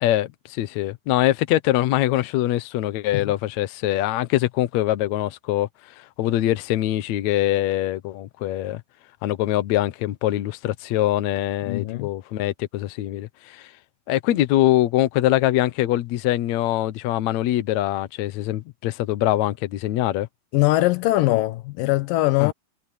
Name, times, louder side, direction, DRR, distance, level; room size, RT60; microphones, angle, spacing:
voice 1, 0.0-5.7 6.0-8.8 9.2-13.7 14.1-20.3 22.4-22.5, left 14 dB, 65° left, 2.0 m, -23 dB
voice 2, 11.6-12.1 20.5-22.5, left 17 dB, 80° left, 2.3 m, -21 dB
omnidirectional pair, 4.0 m